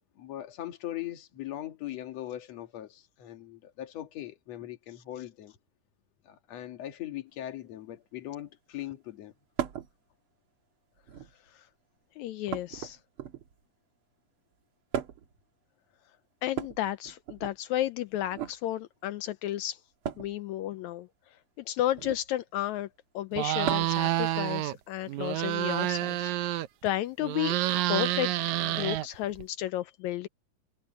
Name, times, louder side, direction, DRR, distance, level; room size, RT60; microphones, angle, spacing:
voice 1, 0.2-5.5 6.2-9.3, left 13 dB, 55° left, 2.6 m, -40 dB
sound 1, 9.6-9.9 11.0-11.5 12.5-13.6 14.9-15.4 16.5-17.6 18.3-18.6 20.0-20.3 21.9-22.3 23.6-24.1 25.5-25.6 26.9-27.0, right 9 dB, 55° right, 1.7 m, -36 dB
voice 2, 12.2-13.0 16.4-19.8 20.2-21.1 21.6-22.9 23.2-27.6 27.9-28.3 28.6-30.3, left 13 dB, 85° left, 1.7 m, -32 dB
sound 2, 23.3-24.8 25.1-26.9 27.2-29.4, right 15 dB, 75° right, 1.9 m, -29 dB
omnidirectional pair, 3.9 m